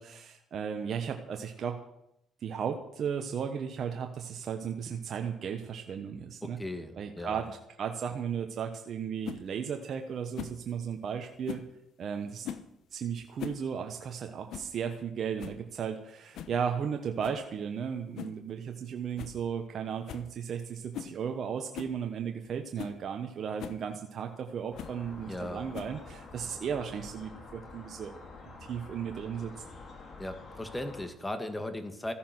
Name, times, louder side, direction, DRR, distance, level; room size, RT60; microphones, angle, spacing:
voice 1, 0.0-1.8 2.4-6.6 6.9-11.6 12.0-12.5 12.9-28.2 28.7-29.5, right 7 dB, 60° right, 4 dB, 1.3 m, -35 dB
voice 2, 6.6-7.4 25.3-25.8 30.2-32.1, left 1 dB, 15° left, 8 dB, 2.1 m, -37 dB
sound 1, 9.2-9.4 10.3-10.6 11.4-11.7 12.4-12.7 13.2-13.6 13.9-14.0 14.5-14.7 15.1-15.2 15.4-15.7 16.3-16.6 17.2-17.4 18.2-18.4 18.7-18.8 19.2-19.4 19.7-19.8 20.1-20.3 20.9-21.2 21.7-22.0 22.4-22.5 22.8-23.0 23.6-23.8 24.8-25.0 25.7-26.1, left 9 dB, 75° left, 1.0 m, -41 dB
sound 2, 24.7-31.1, left 3 dB, 50° left, 3.6 m, -48 dB
14.5 x 10.0 x 6.1 m, 0.79 s
supercardioid pair, 75°, 0 cm